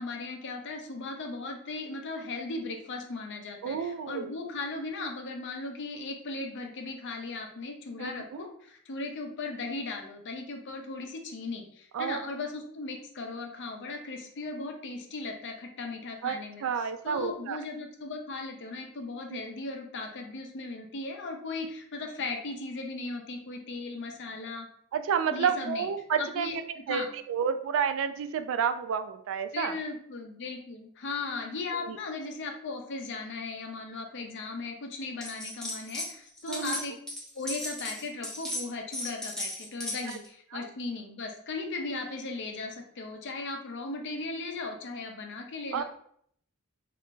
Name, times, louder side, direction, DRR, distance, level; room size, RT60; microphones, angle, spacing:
voice 1, 0.0-16.6 17.0-24.7 25.3-25.9 26.2-27.1 29.5-37.0 37.3-45.8, left 3 dB, 55° left, 3 dB, 0.6 m, -37 dB
voice 2, 3.6-4.3 8.0-8.5 11.9-12.3 16.2-17.6 19.3-19.4 24.9-29.8 31.8-32.0 36.5-36.8 40.5-40.7 45.7-45.8, right 7 dB, 65° right, 10 dB, 0.3 m, -30 dB
sound 1, 35.2-36.1 36.4-40.3, left 1 dB, 5° left, 0.6 m, -36 dB
3.5 x 2.5 x 2.5 m, 0.65 s
head